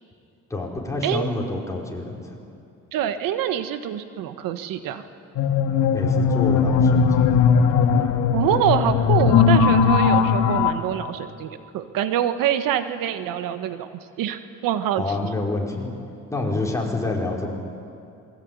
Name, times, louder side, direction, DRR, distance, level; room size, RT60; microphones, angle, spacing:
voice 1, 0.5-2.4 5.9-7.5 15.0-15.9 16.3-17.5, left 2 dB, 10° left, -2 dB, 5.4 m, -27 dB
voice 2, 2.9-5.0 8.3-13.9 14.2-15.0, right 10 dB, 90° right, 10 dB, 1.4 m, -25 dB
sound 1, 5.4-10.7, left 6 dB, 70° left, 2.4 m, -18 dB
27.5 x 22.0 x 9.6 m, 2.5 s
cardioid pair, 120°, 33 cm